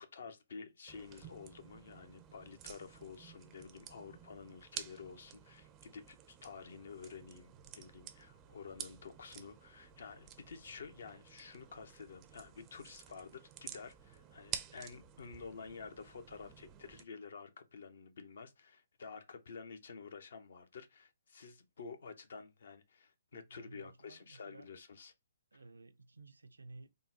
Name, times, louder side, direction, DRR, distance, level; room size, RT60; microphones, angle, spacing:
voice 1, 0.0-25.1 25.5-25.6, left 5 dB, 65° left, 0.6 m, -50 dB
sound 1, 0.9-17.0, right 10 dB, 25° right, 0.4 m, -51 dB
voice 2, 23.3-24.7 25.5-26.9, right 3 dB, 90° right, 0.4 m, -55 dB
3.6 x 2.1 x 2.6 m
hypercardioid pair, 135°, 0 cm